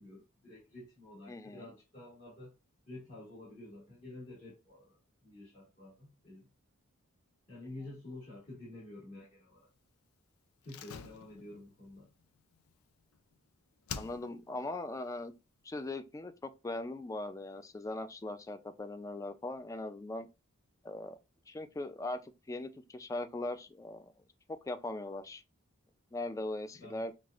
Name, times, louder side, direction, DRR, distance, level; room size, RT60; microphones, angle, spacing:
voice 1, 0.0-2.5 2.9-6.5 7.5-9.7 10.6-12.1 26.7-27.1, left 2 dB, 40° left, 1.8 m, -50 dB
voice 2, 1.3-1.6 14.0-15.3 15.6-20.3 20.8-21.2 21.5-24.1 24.5-25.4 26.1-27.1, left 2 dB, 15° left, 0.3 m, -40 dB
Slam, 10.6-13.4 13.9-14.6 14.9-15.0, left 7 dB, 90° left, 0.4 m, -47 dB
5.8 x 2.4 x 2.4 m
head